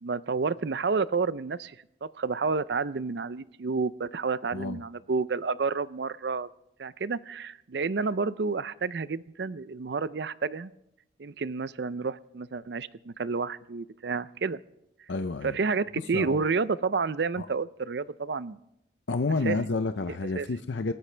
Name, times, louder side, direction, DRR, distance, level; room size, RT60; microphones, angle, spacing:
voice 1, 0.0-6.5 6.8-10.7 11.2-14.6 15.4-18.6 19.4-19.6 20.1-20.5, right 4 dB, 60° right, 17 dB, 0.5 m, -30 dB
voice 2, 15.1-15.6 16.1-16.4 17.4-17.5 19.1-20.9, left 3 dB, 70° left, 8 dB, 0.6 m, -29 dB
28.0 x 13.0 x 3.3 m, 0.80 s
head